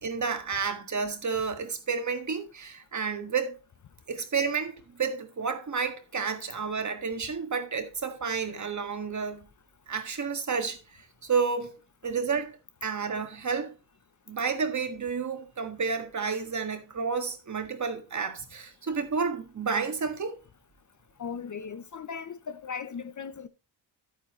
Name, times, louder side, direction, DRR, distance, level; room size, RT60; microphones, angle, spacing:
voice 1, 0.0-3.6 4.1-9.4 9.9-11.8 12.0-12.6 12.8-13.7 14.3-20.4, right 5 dB, 40° right, 1.7 m, -31 dB
voice 2, 21.2-23.5, left 6 dB, 40° left, 0.7 m, -37 dB
10.5 x 9.3 x 3.1 m
wide cardioid pair, 140°, 45 cm